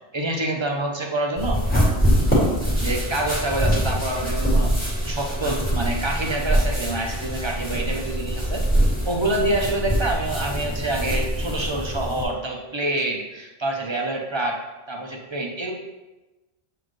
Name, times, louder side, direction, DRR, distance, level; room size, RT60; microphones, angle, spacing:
voice 1, 0.1-1.6 2.8-4.7 5.1-8.7 9.0-14.6 14.9-15.7, right 2 dB, 30° right, 1 dB, 0.6 m, -26 dB
sound 1, 1.4-12.2, equal, 10° left, 2.1 m, -23 dB
7.7 x 4.2 x 3.2 m, 1.1 s
omnidirectional pair, 1.1 m